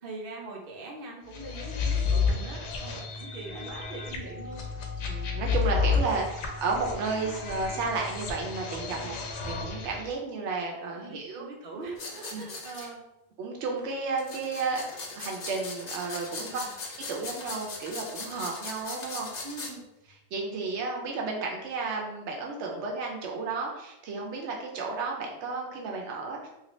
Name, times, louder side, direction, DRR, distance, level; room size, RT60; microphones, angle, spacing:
voice 1, 0.0-4.7 8.9-9.3 10.9-13.1 16.4-16.7 19.4-19.8, right 2 dB, 55° right, -1 dB, 0.9 m, -42 dB
sound 1, 1.3-10.1, left 5 dB, 85° left, 0.9 m, -31 dB
voice 2, 5.1-9.2 9.4-11.4 12.3-12.4 13.4-16.6 17.1-19.3 20.3-26.5, right 4 dB, 85° right, 0 dB, 0.9 m, -32 dB
sound 2, 12.0-12.9 14.2-19.7, left 3 dB, 50° left, 0.6 m, -39 dB
3.2 x 2.7 x 3.0 m, 0.91 s
omnidirectional pair, 1.2 m